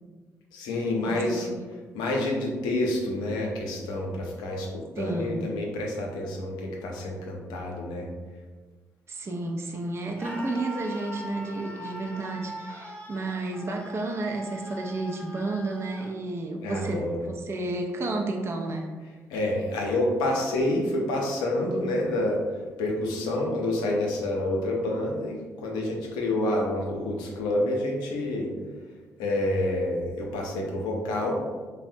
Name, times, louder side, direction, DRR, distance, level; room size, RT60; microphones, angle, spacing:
voice 1, 0.5-1.5 1.9-8.1 16.6-17.2 19.3-22.4 22.8-28.5 29.2-31.4, left 1 dB, 85° left, 0 dB, 0.5 m, -28 dB
voice 2, 1.0-1.6 5.0-5.5 9.1-18.9, right 2 dB, 40° right, 1 dB, 0.4 m, -31 dB
Screaming, 10.2-16.1, equal, 15° left, 0.6 m, -41 dB
3.2 x 2.1 x 2.6 m, 1.4 s
supercardioid pair, 55°, 7 cm